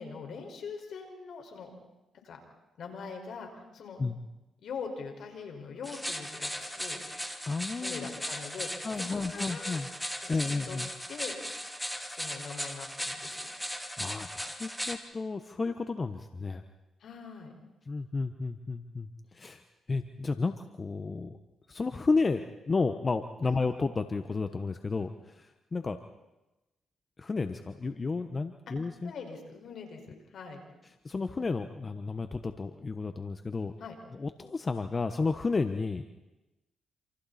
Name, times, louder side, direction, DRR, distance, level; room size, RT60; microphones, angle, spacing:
voice 1, 0.0-1.7 2.1-2.4 2.8-4.0 4.6-7.0 7.8-9.8 10.3-10.8 11.1-11.4 12.1-13.5 17.0-17.5 23.5-23.6 28.7-28.8 29.0-30.0 30.3-30.6 33.8-34.0, left 5 dB, 70° left, 3 dB, 5.5 m, -42 dB
sound 1, 5.8-15.0, equal, ahead, 2.6 m, -37 dB
voice 2, 7.5-8.2 8.8-9.9 10.3-10.9 14.0-16.6 17.9-19.6 19.9-21.4 21.7-26.0 27.2-29.1 31.0-33.7 34.2-36.0, left 4 dB, 35° left, 8 dB, 1.2 m, -32 dB
27.5 x 27.5 x 4.4 m, 1.0 s
cardioid pair, 65°, 0 cm